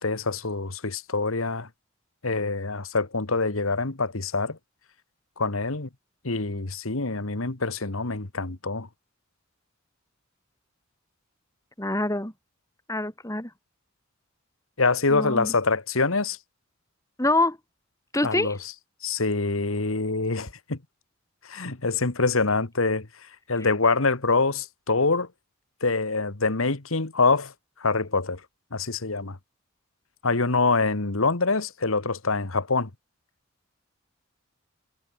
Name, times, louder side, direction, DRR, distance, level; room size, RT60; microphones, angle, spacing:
voice 1, 0.0-1.7 2.2-4.6 5.4-5.9 6.2-8.9 14.8-16.4 18.2-18.6 19.0-20.8 21.4-23.1 23.5-25.3 25.8-27.5 27.8-28.4 28.7-29.4 30.2-32.9, left 3 dB, 80° left, 1.8 m, -25 dB
voice 2, 11.8-12.3 12.9-13.5 15.1-15.5 17.2-17.6 18.1-18.6, left 2 dB, 15° left, 3.5 m, -25 dB
head